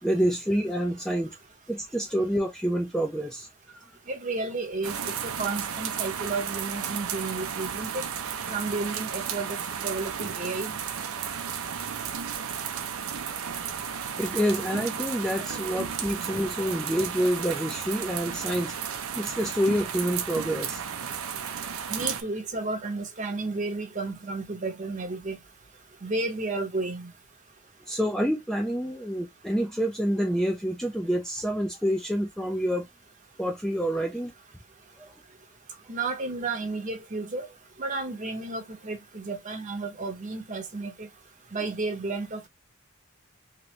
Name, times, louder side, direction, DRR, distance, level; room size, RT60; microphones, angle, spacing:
voice 1, 0.0-1.3 1.7-3.9 13.3-13.5 13.8-18.8 19.1-20.8 27.9-32.9 33.4-34.3 35.0-35.1, equal, ahead, 0.4 m, -28 dB
voice 2, 4.1-8.0 8.5-10.8 21.9-25.4 26.0-27.1 35.9-37.5 37.8-41.1 41.5-42.5, right 3 dB, 35° right, 0.8 m, -32 dB
sound 1, 4.8-22.2, right 8 dB, 80° right, 0.6 m, -33 dB
3.0 x 2.6 x 3.0 m
head